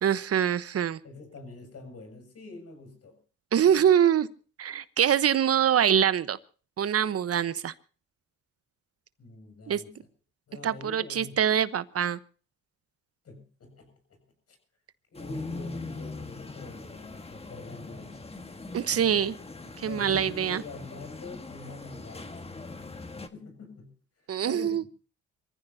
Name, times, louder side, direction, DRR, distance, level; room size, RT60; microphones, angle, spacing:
voice 1, 0.0-1.0 3.5-4.3 4.6-6.4 6.8-7.7 9.7-9.8 10.6-12.2 18.7-19.4 19.8-20.6 24.3-24.8, right 9 dB, 50° right, 14 dB, 1.1 m, -24 dB
voice 2, 1.0-3.2 9.2-10.0 10.5-11.4 13.2-14.2 14.5-14.6 15.1-18.5 19.8-22.5 23.3-23.9 24.2-24.8, left 3 dB, 55° left, 6 dB, 7.0 m, -45 dB
sound 1, 15.1-23.3, left 3 dB, 20° left, 1.5 m, -41 dB
26.5 x 15.0 x 2.8 m, 0.38 s
cardioid pair, 90°, 30 cm